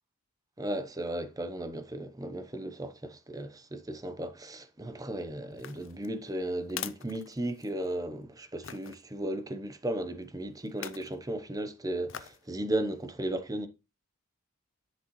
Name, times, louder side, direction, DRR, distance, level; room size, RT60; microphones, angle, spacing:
voice 1, 0.6-13.7, right 1 dB, 15° right, 0.8 m, -35 dB
sound 1, 5.5-8.0 8.6-9.0 10.7-11.1 12.1-12.5 12.9-13.0, left 11 dB, 65° left, 0.5 m, -43 dB
10.5 x 6.1 x 3.1 m
head